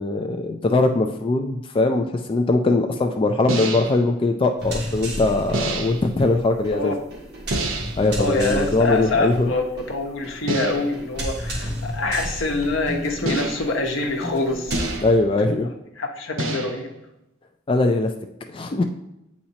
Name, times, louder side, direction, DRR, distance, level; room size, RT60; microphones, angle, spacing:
voice 1, 0.0-6.9 8.0-9.5 15.0-15.7 17.7-18.1 18.5-18.8, left 2 dB, 30° left, 4 dB, 0.4 m, -21 dB
sound 1, 3.5-4.1 5.5-6.1 7.5-8.1 10.5-11.0 13.3-13.9 14.7-15.3 16.4-16.9, right 2 dB, 90° right, 0.8 m, -28 dB
sound 2, 4.6-15.0, equal, 60° right, 1.6 m, -32 dB
voice 2, 6.7-7.0 8.2-14.8 15.4-16.9, left 2 dB, 75° left, 2 dB, 1.0 m, -25 dB
8.6 x 4.3 x 2.8 m, 0.90 s
head